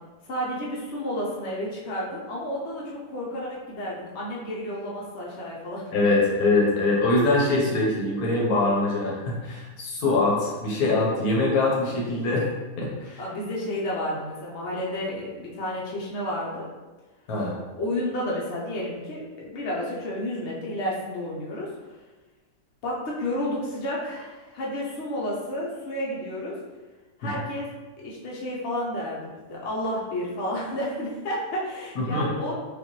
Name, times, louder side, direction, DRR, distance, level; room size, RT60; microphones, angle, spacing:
voice 1, 0.3-5.8 13.2-16.7 17.8-21.7 22.8-26.5 27.2-27.7 28.0-32.5, left 1 dB, 55° left, -5 dB, 1.0 m, -31 dB
voice 2, 5.9-12.4 12.8-13.2 17.3-17.5 31.9-32.3, left 2 dB, 80° left, -3 dB, 1.5 m, -23 dB
5.0 x 2.6 x 3.0 m, 1.2 s
omnidirectional pair, 1.5 m